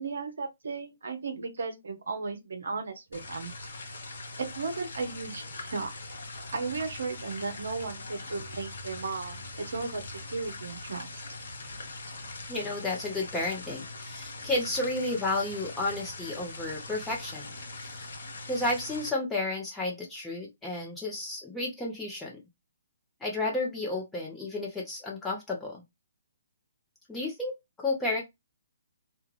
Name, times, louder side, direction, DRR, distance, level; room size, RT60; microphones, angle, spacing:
voice 1, 0.0-3.7 4.4-5.9 6.5-11.2, right 4 dB, 65° right, 0.6 m, -35 dB
sound 1, 3.1-19.1, left 2 dB, 60° left, 0.7 m, -42 dB
voice 2, 12.5-17.5 17.8-18.1 18.5-22.4 23.2-25.8 27.1-28.2, left 2 dB, 5° left, 0.7 m, -32 dB
2.3 x 2.2 x 3.1 m
figure-of-eight pair, 130°, 0 cm